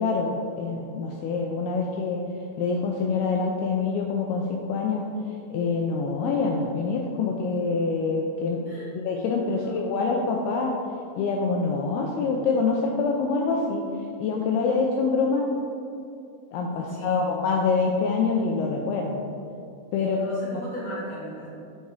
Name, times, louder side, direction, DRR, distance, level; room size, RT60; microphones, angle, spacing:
voice 1, 0.0-2.2 2.6-5.1 5.5-8.6 8.9-10.7 11.2-13.8 14.2-15.5 16.5-19.2 19.9-20.2, left 4 dB, 85° left, 0 dB, 2.2 m, -25 dB
voice 2, 9.4-9.8 16.7-17.3 20.0-21.5, right 1 dB, 45° left, -9 dB, 2.3 m, -37 dB
9.4 x 4.2 x 4.7 m, 2.5 s
omnidirectional pair, 5.1 m